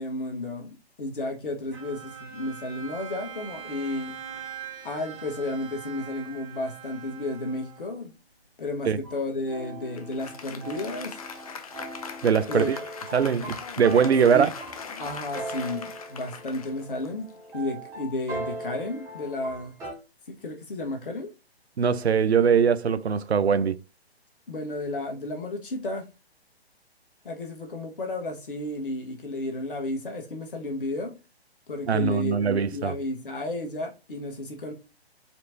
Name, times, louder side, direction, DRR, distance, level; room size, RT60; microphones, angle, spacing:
voice 1, 0.0-4.1 4.8-8.1 8.6-11.2 12.5-12.7 14.3-14.5 15.0-17.3 17.5-19.7 20.3-21.3 24.5-26.1 27.2-31.2 31.7-34.7, left 2 dB, 55° left, 1.3 m, -32 dB
Bowed string instrument, 1.7-8.1, right 8 dB, 55° right, 2.2 m, -42 dB
sound 1, 9.0-19.9, right 1 dB, 10° right, 1.1 m, -39 dB
Applause, 10.0-17.6, left 5 dB, 35° left, 0.6 m, -40 dB
voice 2, 12.2-12.8 13.1-14.5 21.8-23.8 31.9-32.9, right 6 dB, 75° right, 0.5 m, -22 dB
4.2 x 3.1 x 2.7 m
figure-of-eight pair, 130°, 32 cm